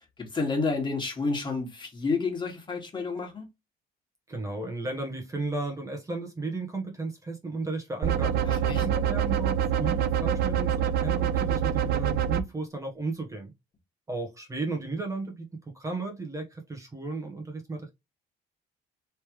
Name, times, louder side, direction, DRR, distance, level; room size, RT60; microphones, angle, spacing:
voice 1, 0.2-3.4 8.4-8.8, left 4 dB, 25° left, 1.7 m, -30 dB
voice 2, 4.3-8.3 8.8-13.5 14.1-17.9, right 3 dB, 20° right, 1.0 m, -34 dB
sound 1, 8.0-12.4, right 9 dB, 65° right, 0.5 m, -26 dB
3.3 x 3.2 x 3.0 m
cardioid pair, 110°, 17 cm